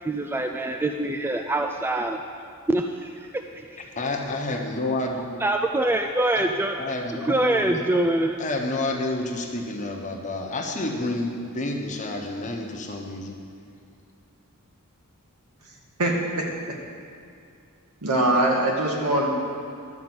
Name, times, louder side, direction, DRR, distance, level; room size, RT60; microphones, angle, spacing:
voice 1, 0.0-2.2 2.7-3.2 3.5-3.7 5.4-6.8 7.2-8.4, right 1 dB, 10° right, 5 dB, 0.3 m, -24 dB
voice 2, 4.0-5.4 6.3-6.5 6.8-8.0 8.4-13.4, left 2 dB, 35° left, 1 dB, 1.1 m, -29 dB
voice 3, 16.0-16.4 18.0-19.3, right 1 dB, 85° right, -1 dB, 1.8 m, -22 dB
12.0 x 5.2 x 7.9 m, 2.5 s
head